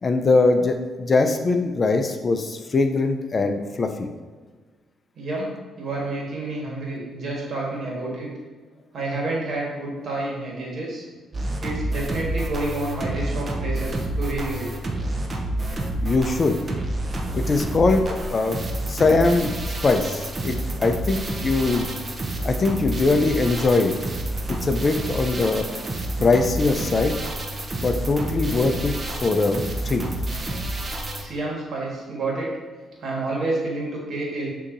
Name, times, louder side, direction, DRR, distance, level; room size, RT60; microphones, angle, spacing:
voice 1, 0.0-4.1 16.0-16.6 17.3-18.6 18.9-19.5 19.8-21.9 22.4-23.9 24.6-25.7 26.2-27.2 27.8-30.0, left 3 dB, 35° left, 6 dB, 0.5 m, -21 dB
voice 2, 5.2-8.3 8.9-11.0 11.6-14.7 31.2-32.5 33.0-34.5, right 2 dB, 60° right, -3 dB, 1.4 m, -29 dB
sound 1, 11.3-31.2, right 1 dB, 35° right, 0.7 m, -29 dB
6.4 x 2.8 x 2.6 m, 1.4 s
cardioid pair, 90°, 0 cm